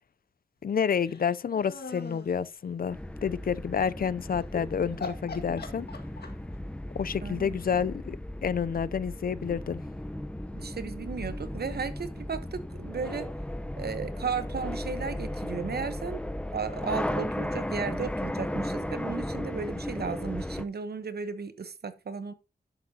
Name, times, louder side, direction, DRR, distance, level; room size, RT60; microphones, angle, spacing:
voice 1, 0.6-5.9 7.0-9.8, left 7 dB, 65° left, 0.4 m, -29 dB
sound 1, 0.9-2.3 4.4-4.6 5.0-6.6, left 3 dB, 85° left, 1.7 m, -40 dB
sound 2, 2.9-20.6, left 1 dB, 5° left, 0.7 m, -35 dB
voice 2, 7.2-7.6 10.5-13.3 13.8-16.2 16.5-22.3, right 5 dB, 80° right, 1.0 m, -35 dB
11.0 x 7.9 x 2.8 m
cardioid pair, 55°, 16 cm